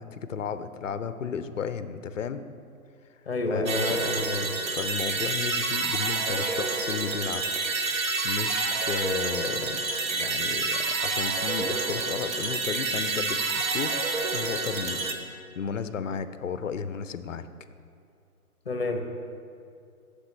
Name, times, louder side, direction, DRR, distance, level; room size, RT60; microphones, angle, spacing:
voice 1, 0.0-2.5 3.5-4.1 4.7-7.4 8.2-17.5, left 6 dB, 60° left, 12 dB, 0.5 m, -34 dB
voice 2, 3.3-4.6 18.7-19.0, left 2 dB, 40° left, 5 dB, 0.8 m, -29 dB
sound 1, 3.7-15.1, right 3 dB, 60° right, 0.9 m, -28 dB
9.6 x 6.7 x 3.2 m, 2.4 s
hypercardioid pair, 180°, 45 cm